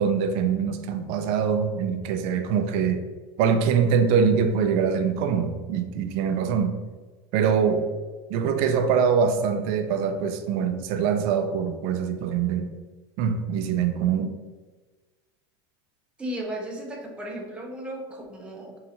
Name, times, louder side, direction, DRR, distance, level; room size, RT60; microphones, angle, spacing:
voice 1, 0.0-3.0 3.4-6.7 7.3-7.9 8.3-12.7 13.2-14.3, right 6 dB, 55° right, 7 dB, 0.4 m, -23 dB
voice 2, 16.2-18.8, right 1 dB, 10° right, -1 dB, 0.6 m, -35 dB
4.1 x 2.4 x 2.8 m, 1.3 s
supercardioid pair, 135°, 13 cm